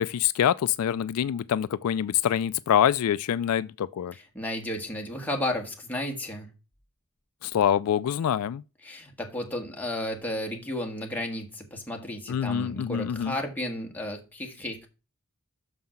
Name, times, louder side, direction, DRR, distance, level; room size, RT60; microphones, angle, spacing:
voice 1, 0.0-4.1 7.4-8.6 12.3-13.3, left 9 dB, 80° left, 0.3 m, -25 dB
voice 2, 4.1-6.5 8.8-14.9, left 1 dB, 5° left, 1.6 m, -33 dB
6.3 x 5.6 x 5.8 m
head